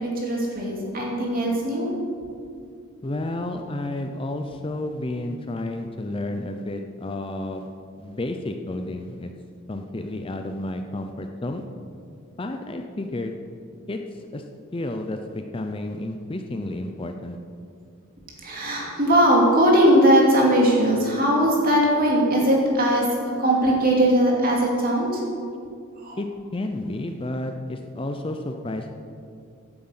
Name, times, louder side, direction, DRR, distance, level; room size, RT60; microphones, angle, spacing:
voice 1, 0.0-1.9 18.4-23.0 23.4-25.2 26.0-26.2, equal, 40° right, -2 dB, 2.6 m, -19 dB
voice 2, 3.0-7.7 8.0-9.3 9.7-11.6 12.4-13.3 13.9-14.4 14.7-17.4 26.2-26.3 26.5-28.9, left 1 dB, 25° left, 5 dB, 0.5 m, -31 dB
9.5 x 7.9 x 8.0 m, 2.3 s
head